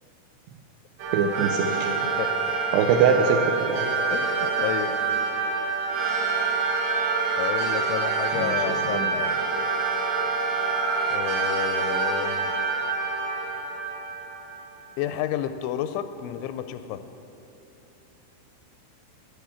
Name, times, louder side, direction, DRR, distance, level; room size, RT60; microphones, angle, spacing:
sound 1, 1.0-14.8, right 4 dB, 65° right, 3.4 m, -26 dB
voice 1, 1.1-1.9 2.7-3.8 8.3-9.1, right 6 dB, 85° right, 4 dB, 2.4 m, -23 dB
voice 2, 4.1-5.0 7.4-9.4 11.1-12.6 15.0-17.0, left 11 dB, 85° left, 11 dB, 2.7 m, -31 dB
15.5 x 10.5 x 7.0 m, 3.0 s
omnidirectional pair, 5.7 m